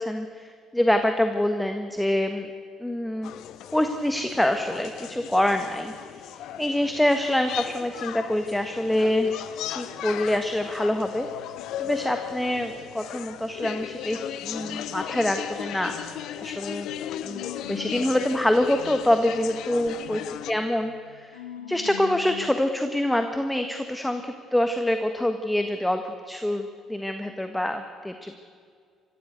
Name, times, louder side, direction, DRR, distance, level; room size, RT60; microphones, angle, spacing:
voice 1, 0.0-2.5 2.8-3.3 3.7-5.9 6.3-9.4 9.7-11.3 11.8-16.2 16.4-16.9 17.2-20.2 20.4-21.4 21.7-28.4, left 1 dB, 5° left, 7 dB, 1.5 m, -26 dB
sound 1, 3.2-20.5, left 11 dB, 65° left, 0.8 m, -37 dB
sound 2, 8.0-14.2 14.6-22.6, left 10 dB, 80° left, 1.1 m, -45 dB
25.0 x 15.0 x 8.1 m, 2.1 s
figure-of-eight pair, 50°, 0 cm